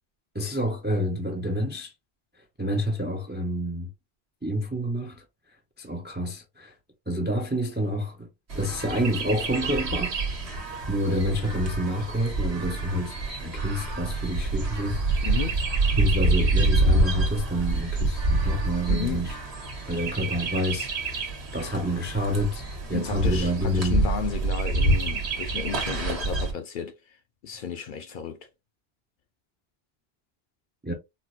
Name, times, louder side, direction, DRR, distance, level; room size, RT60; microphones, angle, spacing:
voice 1, 0.3-1.9 2.6-3.9 4.4-5.2 5.8-6.7 7.1-8.3 8.5-10.6 10.9-15.3 16.0-19.3 19.9-21.3 21.5-24.0 30.8-30.9, equal, 20° right, 0.3 m, -28 dB
Chirp tweet, 8.5-26.5, right 2 dB, 80° right, 1.3 m, -27 dB
voice 2, 15.2-15.6 18.9-19.3 22.9-27.2 27.4-28.5, left 7 dB, 60° left, 0.6 m, -33 dB
4.3 x 2.0 x 2.4 m
omnidirectional pair, 1.1 m